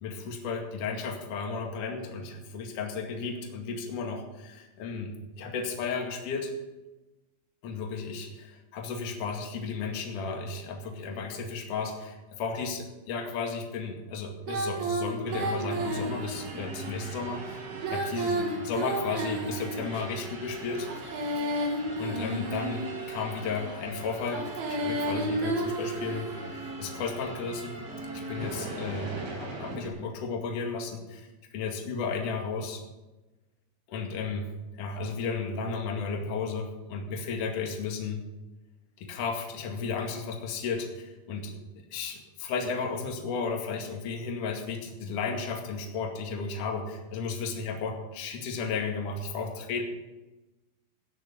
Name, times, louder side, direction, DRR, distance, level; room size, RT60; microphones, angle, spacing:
voice 1, 0.0-5.1 5.4-6.5 7.6-17.6 17.9-20.9 21.4-21.5 22.0-27.7 28.1-32.8 33.9-34.5 34.8-38.2 39.0-41.6 41.9-49.8, left 5 dB, 50° left, 1 dB, 3.2 m, -34 dB
Female singing, 14.4-16.6 17.7-20.0 20.8-23.0 24.2-26.5, right 2 dB, 85° right, 4.7 m, -32 dB
sound 1, 15.3-29.9, right 2 dB, 55° right, 6.1 m, -40 dB
16.5 x 10.0 x 5.5 m, 1.1 s
omnidirectional pair, 5.3 m